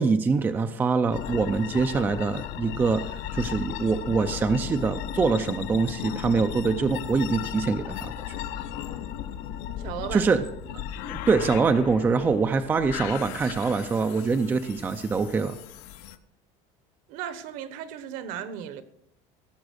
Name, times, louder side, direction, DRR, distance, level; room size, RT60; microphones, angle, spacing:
voice 1, 0.0-3.0 3.3-8.1 10.1-10.4 11.0-15.6, right 4 dB, 15° right, 0.4 m, -24 dB
sound 1, 1.1-16.2, left 10 dB, 65° left, 0.9 m, -36 dB
voice 2, 9.8-10.3 10.7-10.8 17.1-18.8, right 9 dB, 60° right, 1.2 m, -36 dB
17.0 x 7.2 x 6.3 m
cardioid pair, 180°, 15 cm